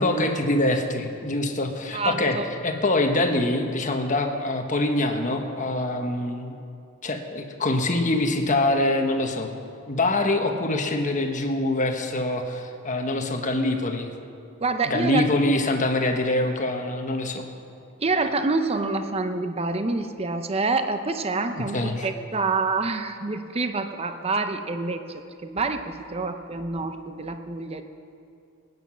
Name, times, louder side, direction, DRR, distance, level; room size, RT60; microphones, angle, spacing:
voice 1, 0.0-2.4 2.6-6.6 7.0-9.5 9.9-14.1 14.9-17.5 21.6-22.1, left 2 dB, 35° left, 4 dB, 1.2 m, -24 dB
voice 2, 1.9-2.4 14.6-15.3 18.0-21.8 22.0-25.0 25.4-27.8, right 3 dB, 30° right, 7 dB, 0.7 m, -27 dB
19.0 x 9.5 x 6.2 m, 2.6 s
head